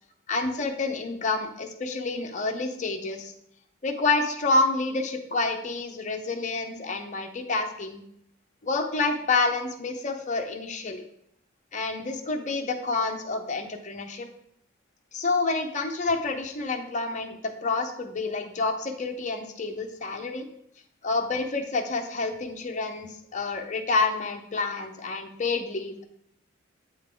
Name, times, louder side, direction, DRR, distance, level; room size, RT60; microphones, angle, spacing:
voice 1, 0.3-3.3 3.8-8.0 8.6-11.0 11.7-14.3 15.1-20.5 21.0-26.1, left 3 dB, 35° left, 4 dB, 0.7 m, -28 dB
8.0 x 3.6 x 3.7 m, 0.71 s
head